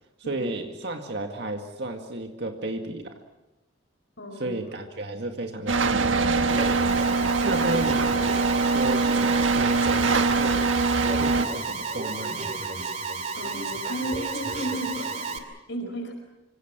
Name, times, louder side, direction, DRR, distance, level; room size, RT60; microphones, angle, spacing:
voice 1, 0.2-3.2 4.3-6.8 7.4-10.7 11.0-12.6, right 2 dB, 55° right, 4 dB, 2.1 m, -33 dB
voice 2, 4.2-4.6 13.3-16.1, right 1 dB, 70° left, 4 dB, 4.9 m, -34 dB
sound 1, 5.7-11.5, right 3 dB, 80° right, 1.6 m, -23 dB
Alarm, 6.5-15.4, right 4 dB, 35° right, 2.5 m, -32 dB
26.0 x 25.5 x 6.1 m, 1.0 s
head